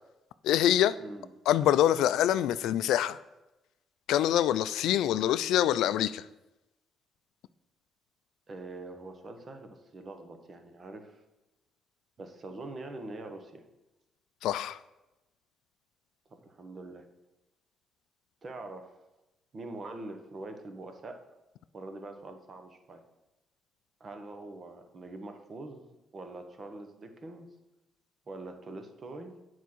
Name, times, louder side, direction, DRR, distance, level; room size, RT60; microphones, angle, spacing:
voice 1, 0.4-1.0 1.5-3.2 4.1-6.2 14.4-14.8, left 11 dB, 85° left, 0.3 m, -25 dB
voice 2, 1.0-1.3 8.5-11.2 12.2-13.6 16.4-17.0 18.4-18.9 19.5-21.2 21.7-23.0 24.0-25.9 26.1-27.5 28.3-29.3, right 2 dB, 40° right, 1.2 m, -44 dB
8.3 x 4.7 x 6.1 m
cardioid pair, 90°, 0 cm